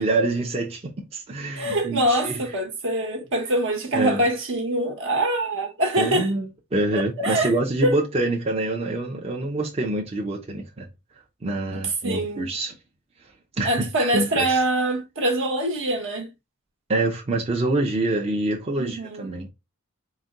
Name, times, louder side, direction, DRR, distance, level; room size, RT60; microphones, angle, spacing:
voice 1, 0.0-2.4 3.9-4.2 6.0-10.9 11.4-12.7 13.6-14.6 16.9-19.5, right 2 dB, 30° right, 0.5 m, -26 dB
voice 2, 1.5-6.3 6.9-7.5 7.8-8.0 11.7-12.5 13.6-16.3 18.8-19.3, right 1 dB, 65° right, 1.1 m, -24 dB
4.1 x 2.2 x 3.6 m
head